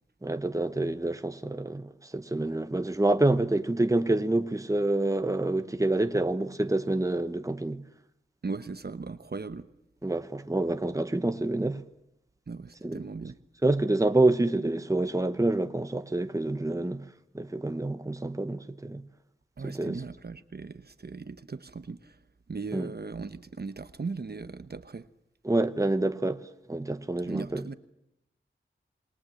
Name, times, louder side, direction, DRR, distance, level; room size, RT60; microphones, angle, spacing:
voice 1, 0.2-7.8 10.0-11.8 12.8-13.0 13.6-17.1 17.3-19.1 19.6-20.0 22.7-22.9 25.4-27.6, right 2 dB, 15° right, 1.1 m, -27 dB
voice 2, 8.4-9.7 12.5-13.4 19.6-22.2 22.5-25.1 27.2-27.7, right 4 dB, 50° right, 1.0 m, -38 dB
27.5 x 21.5 x 7.7 m
wide cardioid pair, 90°, 21 cm